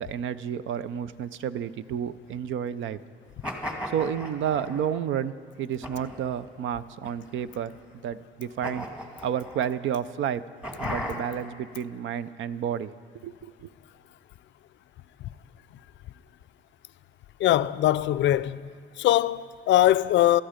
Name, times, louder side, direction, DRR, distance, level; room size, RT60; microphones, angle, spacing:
voice 1, 0.0-3.0 3.9-7.7 8.0-8.8 9.2-10.4 10.8-12.9 13.2-13.7, right 9 dB, 75° right, 0.5 m, -31 dB
sound 1, 3.4-5.0 5.8-6.4 7.0-7.8 8.6-9.7 10.6-11.5, equal, 5° right, 2.3 m, -36 dB
voice 2, 17.4-18.7 19.0-20.4, left 13 dB, 65° left, 0.4 m, -22 dB
17.0 x 13.0 x 5.1 m
cardioid pair, 90°, 20 cm